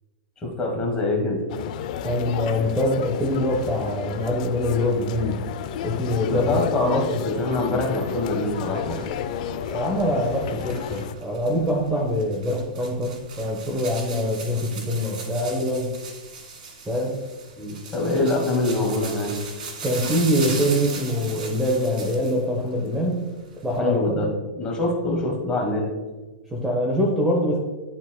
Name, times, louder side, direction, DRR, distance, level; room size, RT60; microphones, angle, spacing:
voice 1, 0.4-1.4 6.3-9.0 17.6-19.3 23.8-24.3 24.5-25.8, left 2 dB, 15° left, -1 dB, 1.7 m, -24 dB
sound 1, 1.5-11.1, left 9 dB, 55° left, 0.5 m, -32 dB
voice 2, 2.0-5.4 5.8-7.2 9.7-15.9 16.8-17.2 18.2-18.3 19.8-23.3 23.6-24.3 26.5-27.6, equal, 5° right, -2 dB, 1.0 m, -24 dB
sound 2, 8.2-22.5 22.8-23.8, right 4 dB, 65° right, 1.6 m, -38 dB
11.0 x 4.0 x 2.2 m, 1.2 s
hypercardioid pair, 145°, 5 cm